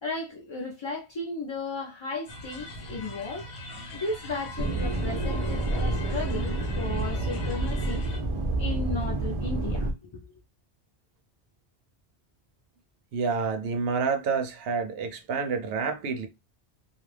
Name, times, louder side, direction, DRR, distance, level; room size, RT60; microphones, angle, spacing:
voice 1, 0.0-3.5 3.9-8.0 8.6-10.3, left 2 dB, 45° left, 0.4 m, -35 dB
sound 1, 2.3-8.2, left 1 dB, 90° left, 1.0 m, -41 dB
sound 2, 4.6-9.9, right 2 dB, 45° right, 0.4 m, -28 dB
voice 2, 13.1-16.3, right 5 dB, 75° right, 0.8 m, -28 dB
2.4 x 2.2 x 3.2 m
omnidirectional pair, 1.0 m